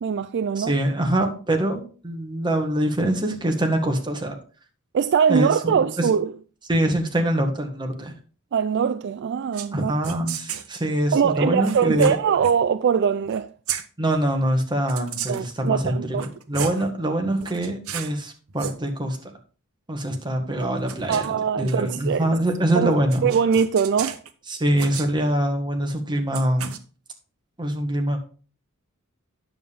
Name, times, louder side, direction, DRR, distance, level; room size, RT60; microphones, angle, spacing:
voice 1, 0.0-0.7 4.9-6.3 8.5-9.9 11.1-13.5 15.3-16.2 21.1-22.4 22.8-22.9 23.2-24.2, right 7 dB, 55° right, 0.4 m, -22 dB
voice 2, 0.6-4.3 5.3-6.1 6.7-8.1 9.7-12.2 14.0-19.2 19.9-23.3 24.5-26.7 27.6-28.2, right 1 dB, 20° right, 1.6 m, -24 dB
sound 1, 9.5-9.7 10.0-10.7 11.7-12.6 13.2-13.4 13.7-13.9 14.9-15.5 16.1-16.9 17.4-18.2 18.5-18.8 20.6-22.1 23.1-24.3 24.8-25.1 26.3-26.8, right 8 dB, 75° right, 0.8 m, -34 dB
9.6 x 6.9 x 3.6 m
head